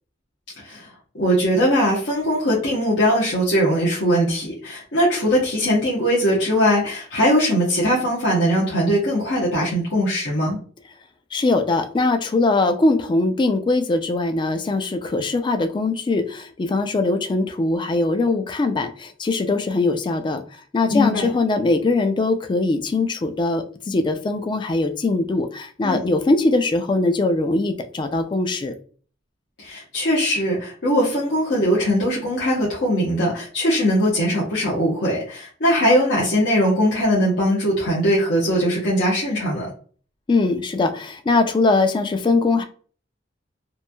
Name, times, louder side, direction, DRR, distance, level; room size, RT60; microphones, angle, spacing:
voice 1, 0.6-10.6 20.9-21.3 25.8-26.0 29.6-39.7, equal, 80° left, -6 dB, 0.9 m, -20 dB
voice 2, 11.3-20.4 20.7-28.7 40.3-42.6, left 3 dB, 25° left, 8 dB, 0.3 m, -21 dB
3.0 x 2.5 x 2.2 m, 0.43 s
head